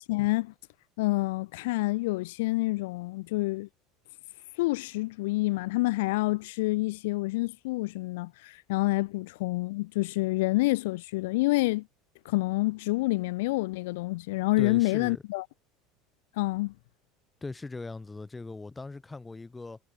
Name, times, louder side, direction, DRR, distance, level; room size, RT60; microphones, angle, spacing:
voice 1, 0.1-0.5 1.0-3.7 4.6-11.9 12.2-15.4 16.4-16.7, left 21 dB, 90° left, 0.6 m, -28 dB
voice 2, 14.6-15.2 17.4-19.8, left 3 dB, 10° left, 1.7 m, -39 dB
cardioid pair, 170°, 0 cm